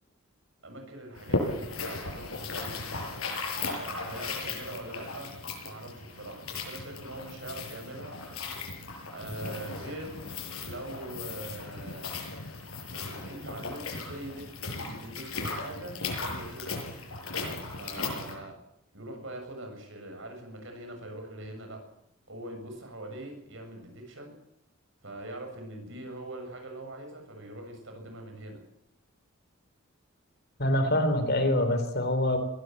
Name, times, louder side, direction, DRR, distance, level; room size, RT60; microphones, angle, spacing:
voice 1, 0.6-2.9 3.5-5.4 5.6-8.2 9.1-10.2 10.6-12.1 12.9-16.8 17.8-18.6 18.9-21.8 22.3-24.3 25.0-28.6, right 1 dB, 60° right, 4 dB, 7.0 m, -42 dB
sound 1, 1.2-18.4, left 3 dB, 90° left, 6.9 m, -36 dB
voice 2, 30.6-32.4, left 1 dB, 50° left, 7 dB, 4.0 m, -25 dB
22.0 x 17.0 x 7.9 m, 0.77 s
head